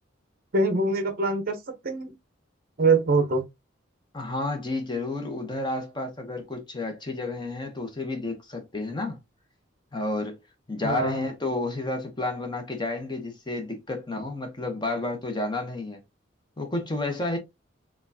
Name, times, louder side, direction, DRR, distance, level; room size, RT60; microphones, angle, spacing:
voice 1, 0.5-2.1 2.8-3.4 10.8-11.2, right 3 dB, 45° right, 0.6 m, -24 dB
voice 2, 4.1-9.2 9.9-10.4 10.7-16.0 16.6-17.4, left 2 dB, 20° left, 0.7 m, -31 dB
4.3 x 2.3 x 2.6 m
head